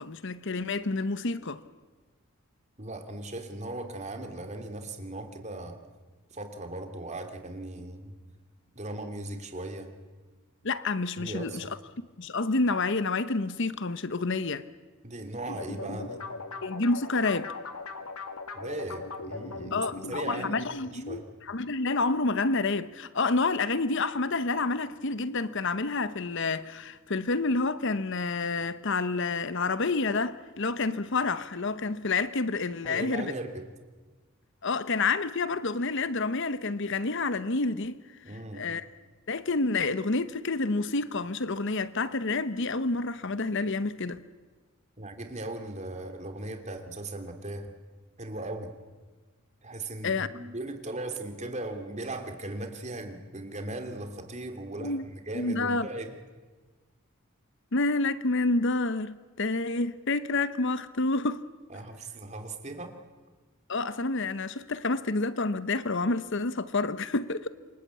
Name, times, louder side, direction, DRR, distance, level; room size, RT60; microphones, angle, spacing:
voice 1, 0.0-1.6 10.6-11.7 12.2-14.7 16.6-17.6 19.7-33.3 34.6-38.0 38.5-38.9 39.3-44.2 50.0-50.3 54.8-55.0 55.3-55.9 57.7-61.4 63.7-67.5, left 3 dB, 55° left, 0.9 m, -29 dB
voice 2, 2.8-5.8 6.3-8.1 8.7-9.9 11.2-11.7 15.0-16.3 18.5-21.3 32.8-33.7 38.2-38.7 45.0-47.7 48.2-48.7 49.6-56.2 61.7-63.0, right 2 dB, 30° right, 2.9 m, -38 dB
sound 1, 15.5-20.6, left 3 dB, 85° left, 2.3 m, -39 dB
28.0 x 24.5 x 8.4 m
head